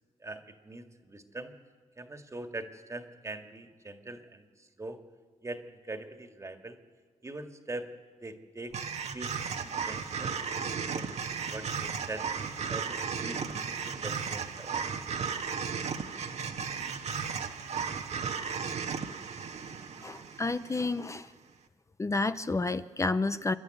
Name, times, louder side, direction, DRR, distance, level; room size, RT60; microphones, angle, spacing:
voice 1, 0.2-1.5 2.0-5.0 5.4-6.8 7.2-7.9 8.2-8.8 9.1-12.3 12.7-15.1, right 2 dB, 25° right, 6 dB, 1.9 m, -43 dB
sound 1, 8.7-21.0, right 6 dB, 65° right, 1.4 m, -35 dB
voice 2, 20.0-21.3 22.0-23.5, left 3 dB, 25° left, 12 dB, 0.6 m, -30 dB
28.5 x 11.5 x 9.3 m, 1.5 s
cardioid pair, 85°, 12 cm